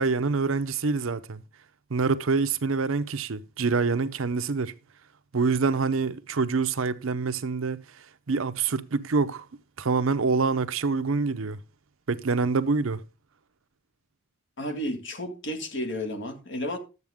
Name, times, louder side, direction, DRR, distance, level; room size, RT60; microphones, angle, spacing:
voice 1, 0.0-1.4 1.9-4.7 5.3-7.8 8.3-9.5 9.8-11.6 12.1-13.0, right 4 dB, 70° right, 0.7 m, -26 dB
voice 2, 14.6-16.8, left 1 dB, 60° left, 1.9 m, -32 dB
12.0 x 8.1 x 3.6 m
head